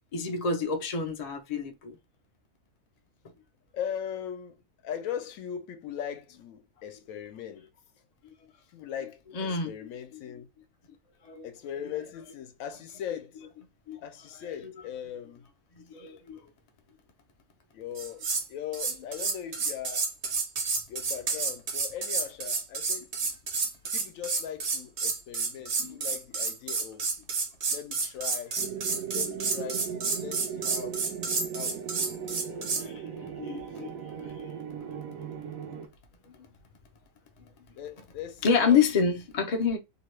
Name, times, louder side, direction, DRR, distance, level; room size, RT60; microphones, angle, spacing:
voice 1, 0.1-2.0 8.2-8.3 9.3-9.7 11.2-11.5 13.9-14.0 15.9-16.4 25.8-26.0 32.8-33.9 34.2-34.3 36.4-36.5 38.4-39.8, left 5 dB, 50° left, 0.4 m, -28 dB
voice 2, 3.7-7.7 8.7-10.5 11.4-13.4 14.0-15.4 17.7-20.1 20.9-23.1 23.9-27.1 27.7-28.6 29.1-31.0 31.5-32.8 37.7-39.1, left 9 dB, 75° left, 1.0 m, -39 dB
sound 1, 18.0-18.5 18.7-32.9, right 4 dB, 60° right, 1.0 m, -30 dB
sound 2, 28.6-35.9, right 8 dB, 80° right, 1.0 m, -38 dB
2.8 x 2.2 x 3.1 m
omnidirectional pair, 1.4 m